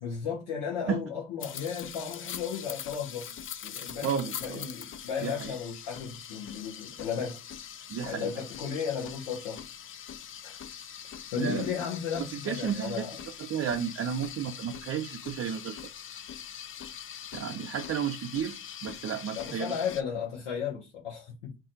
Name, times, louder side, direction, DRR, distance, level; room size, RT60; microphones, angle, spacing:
voice 1, 0.0-3.3 3.6-7.4 8.0-9.6 10.4-10.6 11.3-13.2 19.3-21.6, left 7 dB, 85° left, 0.9 m, -34 dB
sound 1, 1.4-20.0, left 9 dB, 35° left, 0.5 m, -42 dB
voice 2, 4.0-4.6 5.2-5.5 7.9-8.3 11.4-11.7 12.3-13.1 13.4-15.8 17.3-19.7, right 8 dB, 40° right, 0.5 m, -32 dB
2.5 x 2.3 x 3.9 m
hypercardioid pair, 55°, 35 cm